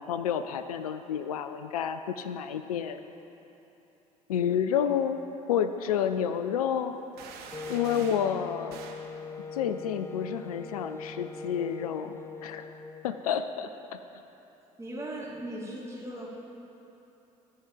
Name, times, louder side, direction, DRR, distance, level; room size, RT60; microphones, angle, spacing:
voice 1, 0.0-3.0 4.3-5.2 5.5-7.0 7.7-8.8 9.5-12.7 13.0-14.0, left 8 dB, 80° left, 10 dB, 0.4 m, -30 dB
sound 1, 7.2-8.3 8.7-9.1, right 5 dB, 60° right, 1.1 m, -45 dB
Wind instrument woodwind instrument, 7.5-13.2, left 3 dB, 15° left, 0.4 m, -41 dB
voice 2, 14.8-16.3, right 1 dB, 15° right, -5 dB, 2.9 m, -38 dB
14.0 x 4.7 x 7.3 m, 3.0 s
figure-of-eight pair, 55°, 19 cm